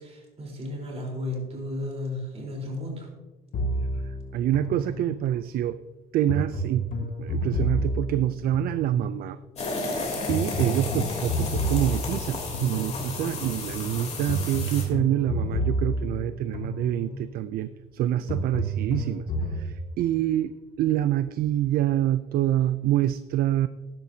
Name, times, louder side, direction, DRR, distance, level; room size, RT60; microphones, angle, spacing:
voice 1, 0.0-3.1 18.0-18.2, left 1 dB, 40° right, -1 dB, 3.8 m, -34 dB
sound 1, 3.5-5.4 6.3-9.3 10.3-13.4 14.3-17.3 18.3-19.7, equal, 60° left, 2.0 m, -30 dB
voice 2, 4.0-5.8 6.1-6.8 7.2-9.4 10.3-19.3 19.5-23.7, right 12 dB, 65° right, 14 dB, 0.4 m, -26 dB
sound 2, 9.6-14.8, left 3 dB, 40° left, 3.2 m, -32 dB
12.5 x 10.5 x 2.7 m, 1.1 s
cardioid pair, 110°, 17 cm